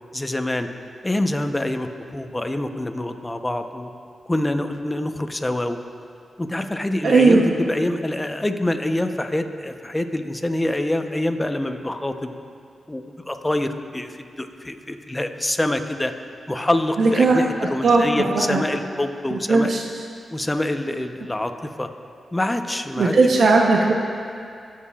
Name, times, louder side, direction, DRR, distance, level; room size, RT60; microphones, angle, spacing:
voice 1, 0.1-0.7 1.0-3.9 4.3-5.8 6.4-12.3 12.9-16.1 16.5-19.8 20.3-21.9 22.3-23.1, left 1 dB, 20° left, 7 dB, 0.8 m, -25 dB
voice 2, 7.0-7.4 17.0-17.4 17.8-18.6 19.3-20.0 23.0-23.9, right 3 dB, 75° right, -1 dB, 0.8 m, -17 dB
18.0 x 7.6 x 2.4 m, 2.3 s
supercardioid pair, 45°, 0 cm